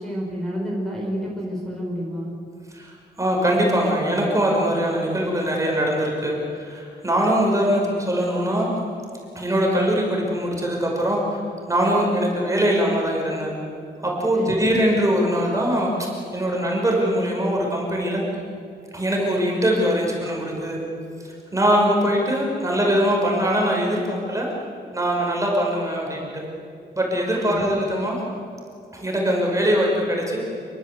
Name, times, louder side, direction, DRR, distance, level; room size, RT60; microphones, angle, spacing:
voice 1, 0.0-2.3 14.3-14.6 27.4-27.7, equal, 5° left, -3 dB, 4.9 m, -29 dB
voice 2, 2.7-8.7 9.4-11.4 11.7-13.5 14.0-18.2 18.9-20.8 21.2-24.5 24.9-26.4 26.9-28.2 28.9-30.4, equal, 15° right, -2 dB, 5.6 m, -22 dB
28.0 x 23.0 x 8.1 m, 2.4 s
wide cardioid pair, 155°, 18 cm